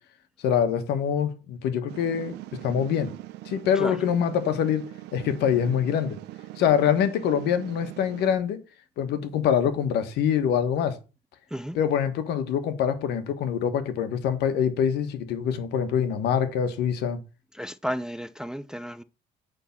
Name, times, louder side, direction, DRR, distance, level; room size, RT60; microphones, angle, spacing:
voice 1, 0.4-2.3 2.6-3.1 3.4-6.2 6.6-8.6 9.0-11.0 11.7-17.2, left 8 dB, 80° left, 1.3 m, -25 dB
sound 1, 1.9-8.3, right 16 dB, 85° right, 0.7 m, -42 dB
voice 2, 17.5-19.0, equal, 5° right, 0.4 m, -33 dB
9.1 x 3.7 x 5.9 m
cardioid pair, 110°, 17 cm